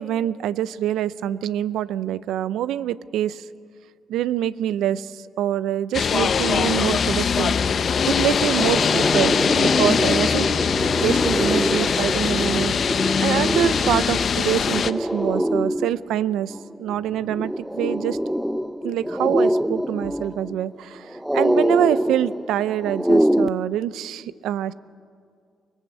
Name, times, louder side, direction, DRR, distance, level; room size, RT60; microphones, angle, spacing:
voice 1, 0.0-3.4 4.1-7.6 8.1-10.5 11.0-18.2 18.8-24.7, right 11 dB, 85° right, 17 dB, 0.5 m, -25 dB
sound 1, 5.9-14.9, left 6 dB, 50° left, 0.8 m, -22 dB
sound 2, 7.3-23.5, equal, 5° right, 0.6 m, -25 dB
24.5 x 18.5 x 8.2 m, 2.2 s
cardioid pair, 90°, 0 cm